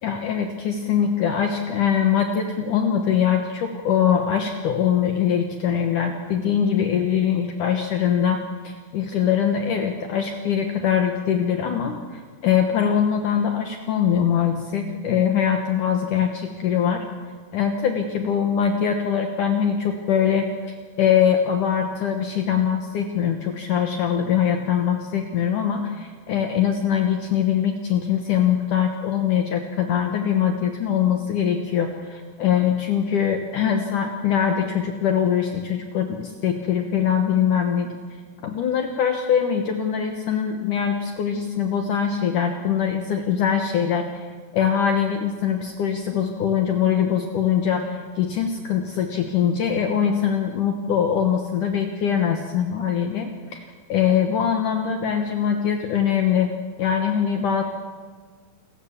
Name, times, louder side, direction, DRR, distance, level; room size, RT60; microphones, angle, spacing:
voice 1, 0.0-17.1 17.5-37.9 38.4-44.3 44.5-53.6 53.9-56.5 56.8-57.6, left 8 dB, 65° left, 4 dB, 2.3 m, -22 dB
28.0 x 15.0 x 7.2 m, 1.5 s
omnidirectional pair, 4.9 m